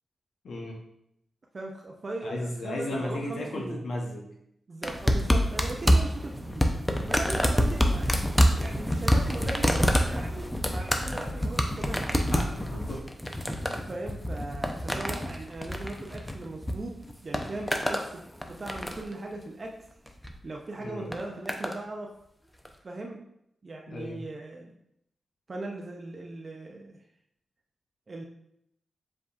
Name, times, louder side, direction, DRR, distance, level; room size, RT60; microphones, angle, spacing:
voice 1, 0.4-0.8 2.2-4.3 12.3-13.0 20.8-21.1 23.9-24.2, left 1 dB, 80° left, -2 dB, 0.8 m, -35 dB
voice 2, 1.5-3.8 4.7-6.7 7.1-8.1 8.6-12.0 13.7-17.0 17.2-19.7 20.4-22.1 22.8-23.2 23.6-24.7 25.5-27.0 28.1-28.2, right 2 dB, 45° right, 0 dB, 0.5 m, -39 dB
sound 1, 4.8-16.8 17.0-18.1 18.4-19.1 20.1-20.3 21.1-21.8 22.7-22.8, equal, 5° left, 0.5 m, -26 dB
5.0 x 3.5 x 2.4 m, 0.77 s
cardioid pair, 55°, 0 cm